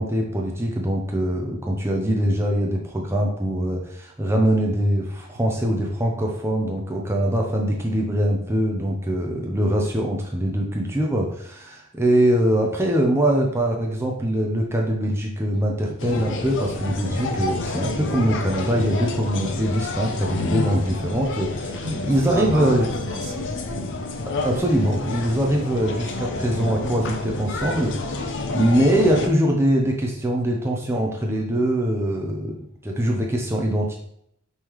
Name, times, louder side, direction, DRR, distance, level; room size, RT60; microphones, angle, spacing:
voice 1, 0.0-22.9 24.2-32.6 32.8-34.0, right 1 dB, 10° right, 0 dB, 0.5 m, -23 dB
sound 1, 16.0-29.3, left 2 dB, 60° left, 0.5 m, -29 dB
voice 2, 21.8-23.9, right 1 dB, 50° right, 4 dB, 0.7 m, -32 dB
5.4 x 3.2 x 3.0 m, 0.72 s
head